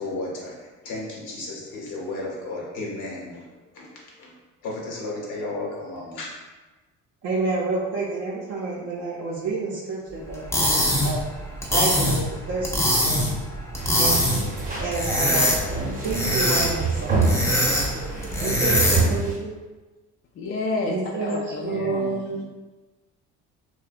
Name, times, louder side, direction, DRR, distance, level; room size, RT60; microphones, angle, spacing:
voice 1, 0.0-4.3 4.6-6.3 21.7-21.9, left 2 dB, 65° left, -3 dB, 0.9 m, -34 dB
voice 2, 7.2-11.3 11.7-13.2 14.0-14.2 14.8-15.5 16.0-19.6 20.8-22.4, right 3 dB, 50° right, -5 dB, 0.6 m, -29 dB
sound 1, 10.3-19.2, equal, 10° left, 0.7 m, -23 dB
sound 2, 13.8-19.4, right 3 dB, 25° right, 0.8 m, -27 dB
voice 3, 20.4-22.5, left 3 dB, 40° left, -2 dB, 0.4 m, -30 dB
2.7 x 2.2 x 2.4 m, 1.2 s
supercardioid pair, 80°, 32 cm